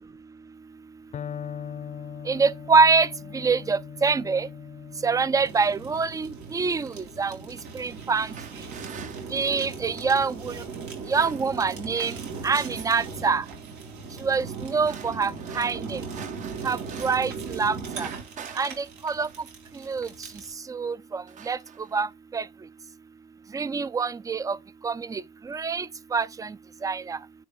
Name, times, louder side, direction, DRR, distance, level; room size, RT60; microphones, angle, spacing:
Electric guitar, 1.1-9.0, left 8 dB, 45° left, 0.7 m, -42 dB
voice 1, 2.3-3.1 3.3-4.5 5.0-6.9 7.2-7.4 7.7-8.3 9.3-10.5 11.1-12.1 12.4-13.4 14.2-16.0 16.6-18.1 18.6-19.3 19.9-20.1 20.7-21.6 21.9-22.1 22.3-22.4 23.5-24.6 24.8-25.2 25.5-25.9 26.1-26.5 26.8-27.2, right 4 dB, 20° right, 0.5 m, -25 dB
Fire, 5.4-20.5, right 5 dB, 80° right, 3.4 m, -38 dB
sound 1, 7.9-10.1 10.8-11.8 12.1-13.0 13.5-13.9 14.6-17.4 17.6-19.8 20.5-20.8 21.0-22.1, right 7 dB, 45° right, 1.0 m, -46 dB
10.0 x 3.4 x 4.5 m
cardioid pair, 110°, 17 cm